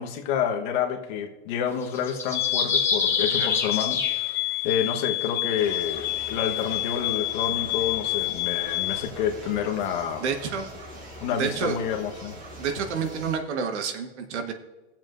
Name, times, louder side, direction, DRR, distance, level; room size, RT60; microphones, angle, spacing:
voice 1, 0.0-4.4 4.6-10.2 11.2-12.3, left 8 dB, 45° left, 2 dB, 1.2 m, -29 dB
sound 1, 1.8-4.8 5.4-6.9, left 4 dB, 10° left, 1.0 m, -29 dB
sound 2, 2.3-9.1, left 20 dB, 80° left, 0.8 m, -28 dB
sound 3, 5.6-13.4, equal, 25° right, 1.8 m, -42 dB
voice 2, 10.2-10.7 11.3-11.7 12.6-14.5, right 6 dB, 80° right, 6 dB, 1.4 m, -29 dB
19.5 x 7.4 x 2.6 m, 1.1 s
supercardioid pair, 165°, 33 cm